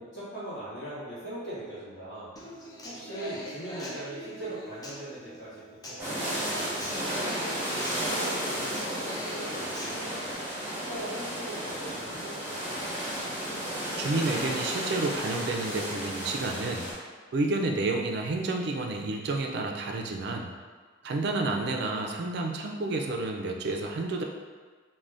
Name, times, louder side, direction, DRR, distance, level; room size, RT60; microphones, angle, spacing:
voice 1, 0.0-2.3 2.8-7.2 7.7-10.3 10.7-12.9, right 1 dB, 70° left, -15 dB, 1.0 m, -40 dB
Human voice / Acoustic guitar, 2.4-10.3, equal, 20° left, 0.3 m, -43 dB
sound 1, 6.0-16.9, equal, 10° right, 0.7 m, -33 dB
voice 2, 14.0-16.9 17.3-20.5 21.0-24.2, right 2 dB, 60° right, 2 dB, 0.3 m, -30 dB
2.5 x 2.1 x 3.3 m, 1.5 s
head